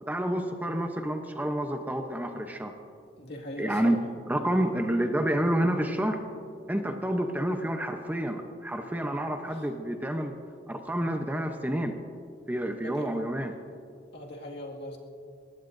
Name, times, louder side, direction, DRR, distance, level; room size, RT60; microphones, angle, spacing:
voice 1, 0.1-2.7 3.6-4.0 4.3-6.2 6.7-10.3 10.7-12.0 12.5-13.6, right 1 dB, 10° right, 5 dB, 0.7 m, -29 dB
voice 2, 3.2-4.0 4.5-4.7 9.5-9.7 12.8-13.2 14.1-15.0, left 1 dB, 60° left, -1 dB, 2.0 m, -40 dB
22.0 x 19.5 x 2.6 m, 2.4 s
head